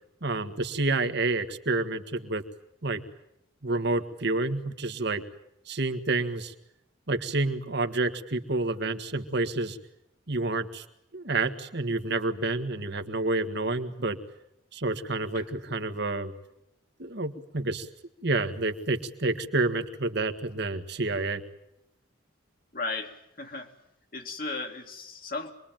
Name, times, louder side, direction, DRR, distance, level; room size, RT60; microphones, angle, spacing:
voice 1, 0.2-2.4 2.8-3.0 3.6-5.2 5.7-6.5 7.1-9.8 10.3-10.8 11.1-14.2 14.7-16.3 17.0-17.9 18.2-21.4, right 2 dB, 55° right, 8 dB, 1.8 m, -29 dB
voice 2, 22.7-23.7 24.1-25.5, left 3 dB, 45° left, 2 dB, 2.3 m, -35 dB
26.5 x 22.0 x 9.1 m, 0.82 s
head